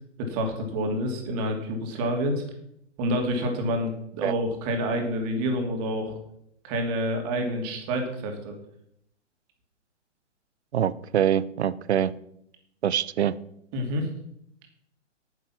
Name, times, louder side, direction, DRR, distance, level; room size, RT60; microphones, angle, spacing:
voice 1, 0.2-2.4 3.0-6.1 6.6-8.5 13.7-14.1, equal, 30° right, 3 dB, 2.9 m, -28 dB
voice 2, 10.7-12.1 12.8-13.3, right 9 dB, 60° right, 19 dB, 0.8 m, -24 dB
9.9 x 9.8 x 5.9 m, 0.75 s
figure-of-eight pair, 125°, 37 cm